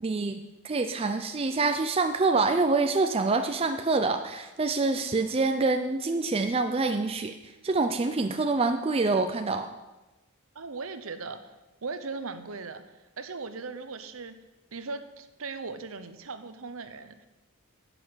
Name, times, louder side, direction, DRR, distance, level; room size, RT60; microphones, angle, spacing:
voice 1, 0.0-9.7, right 3 dB, 25° right, 7 dB, 0.4 m, -26 dB
voice 2, 10.5-11.5 11.8-12.9 13.2-14.4 14.7-17.3, right 4 dB, 65° right, 11 dB, 0.8 m, -38 dB
9.9 x 7.8 x 6.3 m, 1.1 s
head